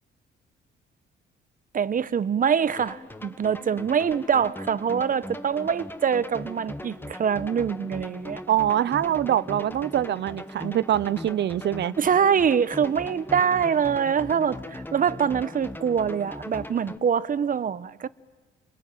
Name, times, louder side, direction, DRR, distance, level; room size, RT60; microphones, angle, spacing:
voice 1, 1.7-8.4 12.0-18.1, right 7 dB, 45° right, 1.0 m, -24 dB
sound 1, 2.8-17.0, left 1 dB, 10° left, 1.6 m, -39 dB
voice 2, 8.5-11.9, right 11 dB, 60° right, 0.9 m, -24 dB
29.0 x 22.5 x 9.3 m
cardioid pair, 90°, 20 cm